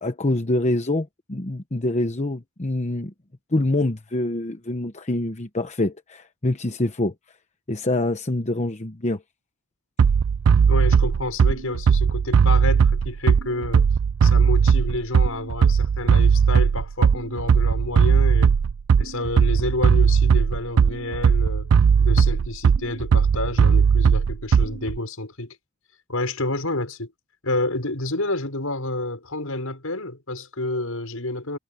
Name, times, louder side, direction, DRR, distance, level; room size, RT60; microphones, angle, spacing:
voice 1, 0.0-3.1 3.5-7.1 7.7-9.2, left 2 dB, 35° left, 1.0 m, -25 dB
Bass drum, 10.0-25.0, right 6 dB, 85° right, 0.4 m, -18 dB
voice 2, 10.7-13.9 14.2-18.6 19.0-21.7 22.0-25.6 26.1-27.1 27.4-31.6, left 2 dB, 80° left, 6.2 m, -29 dB
head